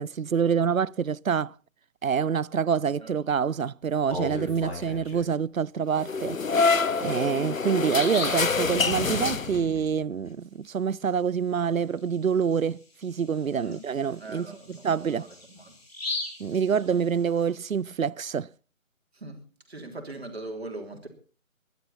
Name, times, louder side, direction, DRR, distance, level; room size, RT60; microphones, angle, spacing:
voice 1, 0.0-1.5 2.0-6.4 7.0-15.3 16.4-18.5, right 7 dB, 80° right, 0.6 m, -26 dB
Bird vocalization bird call bird song, 3.9-5.3 6.8-6.9 7.3-7.4 7.8-8.5 12.0-12.1 12.5-12.6 13.2-17.4, left 2 dB, 45° left, 5.5 m, -37 dB
sound 1, 6.0-9.9, left 4 dB, 75° left, 0.8 m, -26 dB
voice 2, 14.2-15.7 19.1-19.4 19.7-21.1, right 2 dB, 50° right, 3.4 m, -40 dB
20.5 x 12.0 x 4.2 m
figure-of-eight pair, 170°, 41 cm